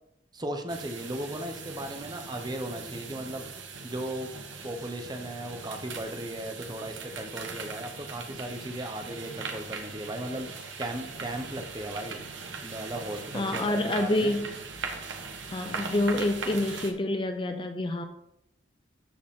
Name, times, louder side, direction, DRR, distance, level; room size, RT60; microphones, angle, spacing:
voice 1, 0.3-3.4 3.8-4.3 4.6-10.5 10.8-12.2 12.6-14.3 15.6-15.8, right 1 dB, 20° right, 5 dB, 0.9 m, -36 dB
sound 1, 0.7-16.9, right 4 dB, 80° right, 1.3 m, -40 dB
voice 2, 13.3-14.5 15.5-18.0, left 1 dB, 25° left, 7 dB, 0.6 m, -27 dB
13.5 x 5.1 x 3.7 m, 0.77 s
head